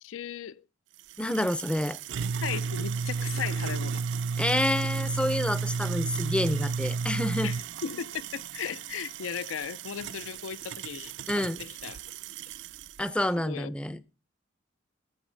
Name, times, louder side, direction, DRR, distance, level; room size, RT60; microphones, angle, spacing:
voice 1, 0.0-0.6 2.4-4.0 7.4-7.6 7.8-12.0 13.4-13.7, left 8 dB, 85° left, 0.4 m, -37 dB
sound 1, 1.0-13.0, right 5 dB, 65° right, 0.4 m, -33 dB
voice 2, 1.2-2.0 4.4-7.5 11.3-11.6 13.0-14.0, left 1 dB, 5° left, 0.4 m, -28 dB
14.5 x 7.1 x 3.2 m
head